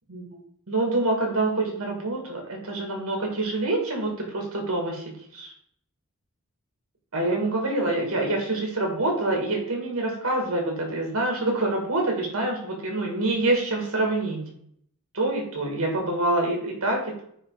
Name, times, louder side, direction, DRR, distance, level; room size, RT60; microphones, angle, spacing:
voice 1, 0.7-5.5 7.1-14.5 15.1-17.2, right 2 dB, 70° right, 0 dB, 2.1 m, -26 dB
9.4 x 3.2 x 4.0 m, 0.67 s
head